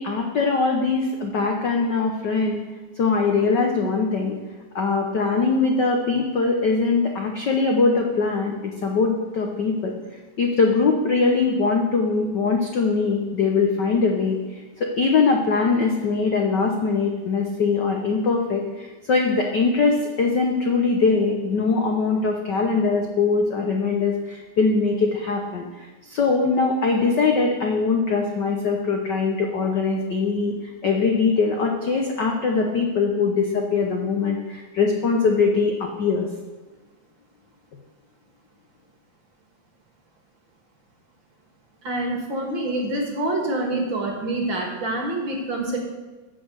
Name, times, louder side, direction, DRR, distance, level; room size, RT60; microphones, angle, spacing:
voice 1, 0.0-2.6 3.0-4.4 4.7-9.9 10.4-30.6 30.8-36.3, left 4 dB, 75° left, 2 dB, 1.0 m, -22 dB
voice 2, 41.8-45.8, right 2 dB, 45° right, 1 dB, 2.4 m, -26 dB
13.5 x 6.0 x 8.0 m, 1.2 s
omnidirectional pair, 3.5 m